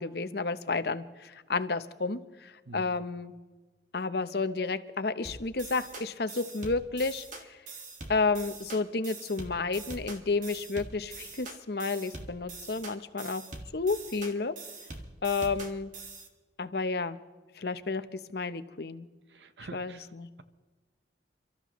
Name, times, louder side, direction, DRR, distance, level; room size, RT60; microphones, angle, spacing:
voice 1, 0.0-3.3 3.9-7.2 8.1-13.4 13.7-14.5 15.2-15.9 16.6-17.2 17.6-19.1 19.7-20.3, left 3 dB, 60° left, 11 dB, 0.8 m, -31 dB
voice 2, 2.7-3.0 19.3-20.1, right 3 dB, 85° right, 11 dB, 1.0 m, -46 dB
sound 1, 5.2-16.3, right 3 dB, 45° right, 1.9 m, -44 dB
29.5 x 13.5 x 3.1 m, 1.3 s
head